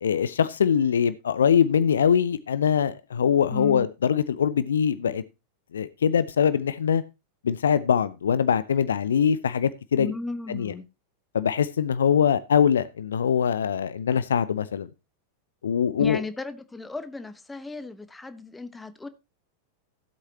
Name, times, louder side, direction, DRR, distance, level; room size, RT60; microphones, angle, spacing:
voice 1, 0.0-5.2 5.7-7.0 7.4-10.1 10.5-10.7 11.3-14.9 15.6-16.2, left 7 dB, 65° left, 0.6 m, -23 dB
voice 2, 3.5-3.9 10.0-10.8 16.0-19.1, left 3 dB, 10° left, 1.1 m, -35 dB
16.0 x 8.1 x 2.9 m
figure-of-eight pair, 90°, 0 cm